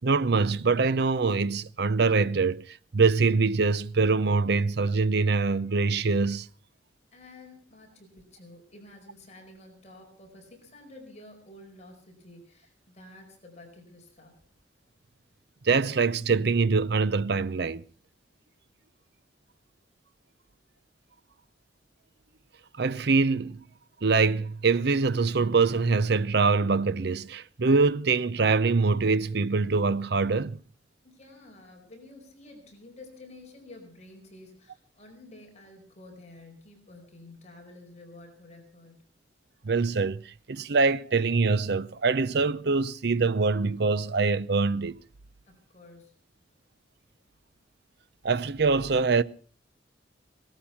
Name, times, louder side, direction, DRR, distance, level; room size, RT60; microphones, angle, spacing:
voice 1, 0.0-6.5 15.6-17.8 22.8-23.6 24.0-30.6 39.6-45.0 48.2-49.2, right 4 dB, 65° right, 0.7 m, -24 dB
voice 2, 7.1-14.4 31.0-39.1 45.5-46.1, left 2 dB, 40° left, 4.9 m, -50 dB
18.5 x 13.0 x 5.7 m
head